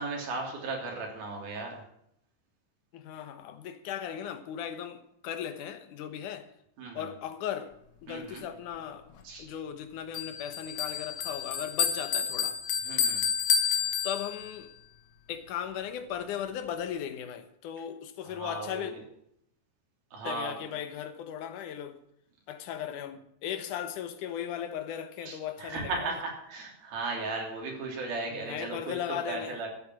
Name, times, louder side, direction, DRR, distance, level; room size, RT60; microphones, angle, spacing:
voice 1, 0.0-1.8 6.8-7.1 8.1-8.4 9.2-9.5 12.8-13.2 18.3-19.0 20.1-20.6 25.2-29.0 29.3-29.7, right 3 dB, 80° right, 5.1 m, -36 dB
voice 2, 2.9-6.5 6.9-7.7 8.0-9.1 9.4-12.6 14.0-14.7 15.3-18.9 20.2-22.0 22.5-26.2 28.3-29.6, left 9 dB, 70° left, 2.4 m, -37 dB
Bell, 10.1-14.7, left 7 dB, 85° left, 1.1 m, -30 dB
14.0 x 8.9 x 6.2 m
omnidirectional pair, 4.2 m